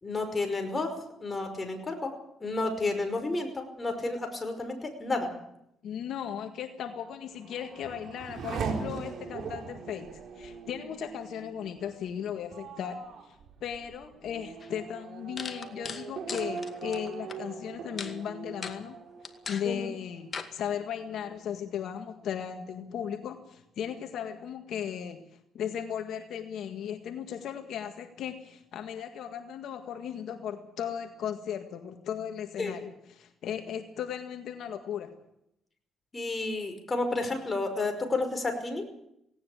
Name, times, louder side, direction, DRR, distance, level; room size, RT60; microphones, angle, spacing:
voice 1, 0.0-2.1 2.4-5.3 19.6-19.9 32.6-32.7 36.1-38.8, left 2 dB, 25° left, 5 dB, 5.4 m, -31 dB
voice 2, 5.8-19.0 19.5-35.1, left 9 dB, 75° left, 6 dB, 1.8 m, -36 dB
Race car auto racing / Accelerating revving vroom, 7.1-20.3 20.7-21.4, right 5 dB, 65° right, 4.2 m, -41 dB
sound 1, 14.6-14.7 15.4-17.4 18.0-18.2 18.6-18.8 19.2-19.7 20.3-20.5, left 5 dB, 40° left, 2.2 m, -38 dB
18.0 x 18.0 x 8.6 m, 0.79 s
cardioid pair, 90°, 0 cm